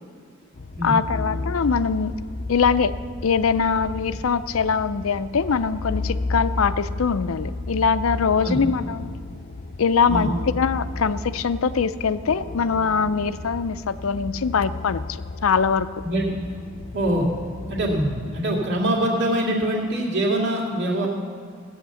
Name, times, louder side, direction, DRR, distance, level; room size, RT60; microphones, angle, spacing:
sound 1, 0.5-18.4, left 2 dB, 40° left, 0.6 m, -33 dB
voice 1, 0.8-2.1 2.5-2.9 3.2-9.1 9.8-15.9, left 5 dB, 90° left, 13 dB, 0.5 m, -22 dB
voice 2, 16.0-16.4 16.9-17.3 17.7-21.1, right 1 dB, 60° right, -2 dB, 2.5 m, -23 dB
16.0 x 8.7 x 7.1 m, 2.3 s
head